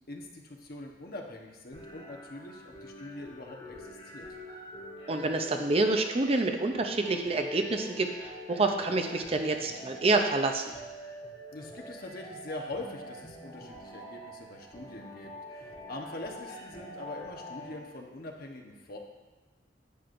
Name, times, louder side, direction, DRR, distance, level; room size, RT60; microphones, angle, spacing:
voice 1, 0.1-4.3 11.5-19.0, left 2 dB, 55° left, 1 dB, 1.0 m, -43 dB
sound 1, 1.7-17.7, equal, 30° left, 3.0 m, -46 dB
voice 2, 5.1-10.7, right 2 dB, 35° right, 5 dB, 0.6 m, -28 dB
10.0 x 8.3 x 2.6 m, 1.2 s
head